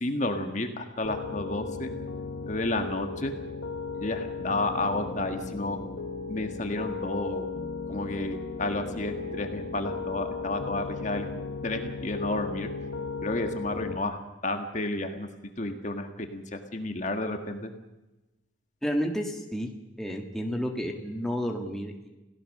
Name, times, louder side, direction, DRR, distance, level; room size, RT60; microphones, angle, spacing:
voice 1, 0.0-1.9 2.5-3.3 4.0-5.8 6.3-7.4 7.9-11.3 11.6-12.7 13.2-14.2 14.4-15.3 15.6-17.7, left 2 dB, 35° left, 6 dB, 1.7 m, -31 dB
Piano, 1.0-14.0, left 4 dB, 75° left, 1.5 m, -36 dB
voice 2, 18.8-19.7 20.0-22.1, equal, ahead, 2 dB, 1.8 m, -31 dB
28.0 x 17.0 x 6.6 m, 1.0 s
head